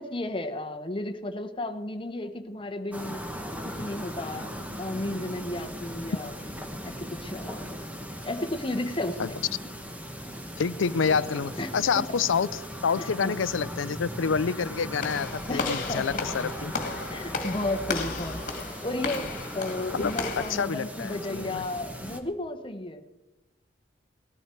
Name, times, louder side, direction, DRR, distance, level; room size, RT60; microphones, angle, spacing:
voice 1, 0.0-3.2 3.6-4.5 4.8-6.3 6.8-7.8 8.2-9.4 11.6-12.0 13.2-13.4 15.5-16.0 17.1-18.4 18.8-23.0, left 1 dB, 25° left, 6 dB, 1.0 m, -33 dB
sound 1, 2.9-22.2, equal, 10° right, 1.1 m, -38 dB
voice 2, 10.6-16.7 19.9-21.7, left 6 dB, 75° left, 17 dB, 0.5 m, -28 dB
Walk footsteps / Slam, 15.0-20.6, left 3 dB, 40° left, 2.1 m, -34 dB
18.0 x 13.5 x 4.6 m, 1.1 s
head